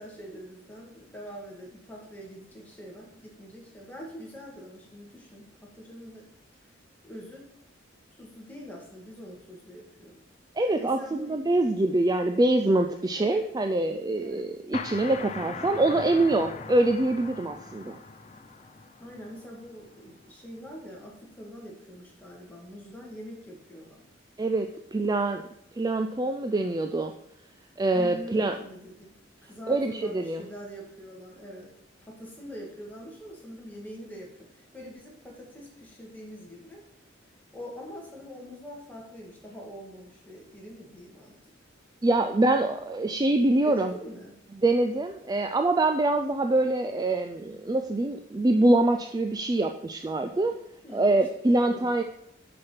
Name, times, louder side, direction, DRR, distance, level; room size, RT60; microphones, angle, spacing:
voice 1, 0.0-6.3 7.0-7.5 8.2-10.2 10.8-11.4 13.1-13.4 14.1-14.5 19.0-24.0 27.9-29.1 29.4-36.8 37.5-41.4 42.2-42.4 43.6-44.4 50.8-51.2 51.5-52.0, equal, 10° left, -3 dB, 2.1 m, -44 dB
voice 2, 10.6-18.0 24.4-25.4 25.8-27.1 27.8-28.6 29.7-30.5 42.0-43.9 44.6-50.5 50.9-52.0, right 2 dB, 20° right, 5 dB, 0.4 m, -24 dB
sound 1, 14.7-20.2, left 4 dB, 35° left, 0.6 m, -41 dB
6.4 x 6.0 x 5.7 m, 0.76 s
head